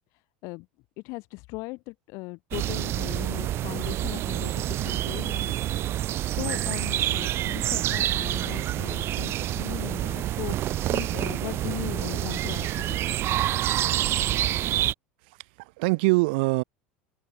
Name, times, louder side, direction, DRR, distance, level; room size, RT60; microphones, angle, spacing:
voice 1, 1.0-5.6 6.3-13.7, left 26 dB, 60° left, 7.5 m, -38 dB
sound 1, 2.5-14.9, right 13 dB, 45° right, 0.7 m, -27 dB
voice 2, 15.3-16.6, right 26 dB, 70° right, 3.3 m, -24 dB
hypercardioid pair, 80°, 6 cm